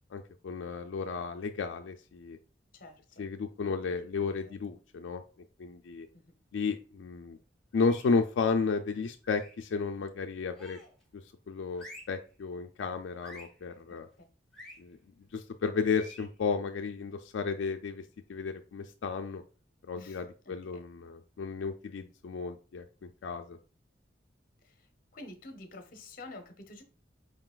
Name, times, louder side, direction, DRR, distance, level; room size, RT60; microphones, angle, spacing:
voice 1, 0.1-2.4 3.2-5.2 5.6-6.1 6.5-7.4 7.7-10.8 11.5-14.1 14.8-15.0 15.3-18.0 18.3-19.4 19.9-22.9 23.2-23.6, left 5 dB, 85° left, 5 dB, 0.4 m, -33 dB
voice 2, 2.7-3.3 4.2-4.5 6.1-6.3 14.2-14.3 19.9-20.8 24.6-24.9 25.1-26.8, left 2 dB, 50° left, 7 dB, 0.8 m, -49 dB
sound 1, 7.7-8.2 9.2-9.7 10.5-11.0 11.7-12.2 13.2-13.6 14.5-14.8 15.8-16.3, left 1 dB, ahead, 1.4 m, -50 dB
5.0 x 3.8 x 2.4 m, 0.37 s
head